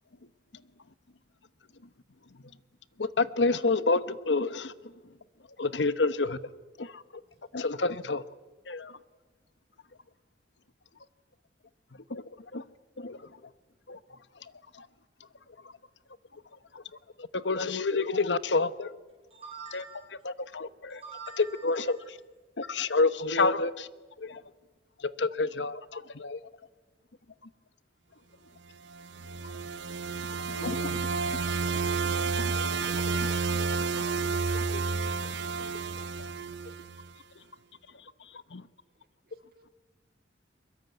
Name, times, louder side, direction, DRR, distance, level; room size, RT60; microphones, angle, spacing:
voice 1, 3.0-4.7 5.6-6.4 6.8-7.0 7.5-8.2 8.7-8.9 12.1-12.2 12.5-12.6 13.0-13.2 13.9-14.0 14.8-14.9 17.2-18.9 19.7-19.8 20.2-21.0 21.6-22.0 22.6-23.9 24.2-24.4 25.0-26.4 30.6-34.2 34.5-34.8 38.5-38.6, left 3 dB, 90° left, 15 dB, 1.1 m, -29 dB
voice 2, 19.3-20.0 20.9-22.2, right 4 dB, 35° right, -1 dB, 5.3 m, -45 dB
sound 1, 28.9-37.1, right 4 dB, 85° right, 0.9 m, -31 dB
voice 3, 39.0-39.7, right 1 dB, 55° right, 8 dB, 2.6 m, -68 dB
23.0 x 21.5 x 9.3 m, 1.3 s
head